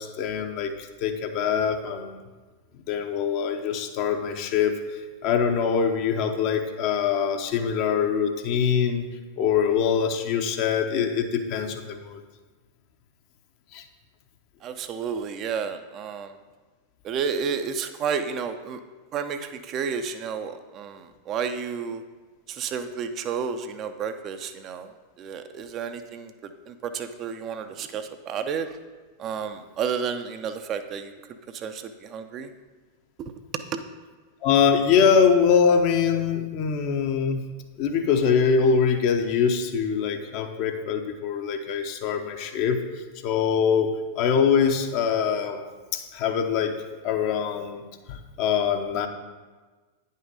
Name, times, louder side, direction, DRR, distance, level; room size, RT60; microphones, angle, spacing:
voice 1, 0.0-2.2 2.9-4.8 5.2-9.0 9.4-12.2 13.7-13.8 34.4-37.4 37.8-42.8 43.2-45.6 45.9-46.8 47.0-47.8 48.1-49.1, left 6 dB, 45° left, 5 dB, 0.8 m, -23 dB
voice 2, 14.6-16.3 17.0-18.8 19.1-22.0 22.5-24.9 25.2-26.3 26.7-28.7 29.2-31.1 31.5-32.5 33.2-33.8, right 6 dB, 35° right, 8 dB, 0.5 m, -31 dB
9.4 x 5.6 x 5.0 m, 1.3 s
figure-of-eight pair, 90°, 0 cm